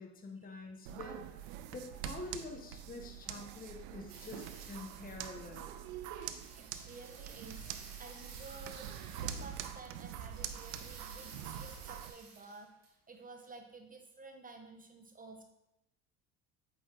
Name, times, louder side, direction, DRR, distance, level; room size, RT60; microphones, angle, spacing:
voice 1, 0.0-5.7, left 3 dB, 20° left, 3 dB, 0.9 m, -47 dB
sound 1, 0.9-12.1, right 10 dB, 65° right, 0.6 m, -45 dB
sound 2, 4.1-5.5 5.8-9.7 10.1-12.9 13.1-13.5, right 4 dB, 90° right, 1.1 m, -54 dB
voice 2, 6.6-7.7 8.0-8.9 9.2-12.7 13.1-15.4, right 3 dB, 20° right, 4 dB, 0.7 m, -52 dB
8.3 x 4.0 x 2.9 m, 0.88 s
hypercardioid pair, 70°, 45 cm